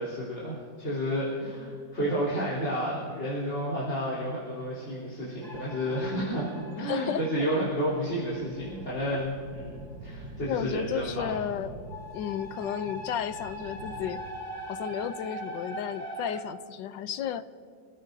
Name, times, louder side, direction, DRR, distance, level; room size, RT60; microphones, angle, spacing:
voice 1, 0.0-11.4, equal, 35° left, -7 dB, 4.0 m, -31 dB
sound 1, 5.4-9.9 11.8-16.4, left 1 dB, 10° right, 2.0 m, -41 dB
voice 2, 6.8-7.2 10.5-14.2 14.7-17.4, left 9 dB, 80° left, 12 dB, 1.3 m, -33 dB
sound 2, 8.2-14.2, right 3 dB, 85° right, 2.1 m, -46 dB
28.5 x 16.0 x 2.7 m, 2.3 s
omnidirectional pair, 2.0 m